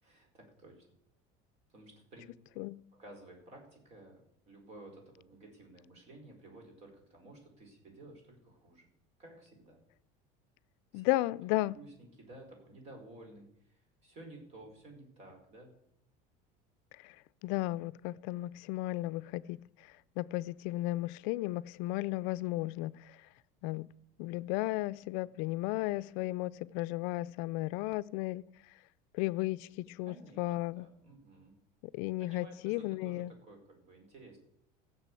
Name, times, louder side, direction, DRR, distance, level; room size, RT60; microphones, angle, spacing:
voice 1, 0.0-0.9 1.7-2.3 2.9-8.9 9.2-9.8 10.9-11.0 11.5-15.7 30.1-31.5 32.2-34.4, right 2 dB, 40° right, 4.7 m, -54 dB
voice 2, 10.9-11.8 17.0-17.1 17.4-19.7 20.2-23.1 23.6-23.9 24.2-28.4 29.1-30.9 31.9-33.3, left 18 dB, 65° left, 0.5 m, -34 dB
16.0 x 6.9 x 8.3 m
cardioid pair, 150°, 17 cm